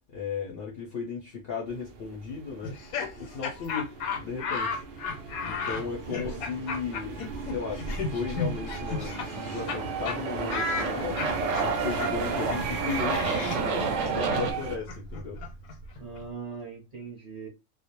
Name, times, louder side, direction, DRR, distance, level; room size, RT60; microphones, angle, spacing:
voice 1, 0.1-2.8 3.2-3.9 4.2-4.8 5.4-11.3 11.6-15.4, left 5 dB, 60° left, 0.6 m, -36 dB
sound 1, 1.7-14.8, right 6 dB, 85° right, 0.4 m, -37 dB
Laughter, 2.6-9.8 10.1-10.2 10.5-16.2, left 4 dB, 85° left, 1.1 m, -34 dB
voice 2, 6.1-6.4 16.0-17.5, right 5 dB, 40° right, 0.6 m, -40 dB
Aircraft, 8.8-14.5, right 4 dB, 70° right, 0.8 m, -31 dB
2.4 x 2.0 x 2.8 m
omnidirectional pair, 1.5 m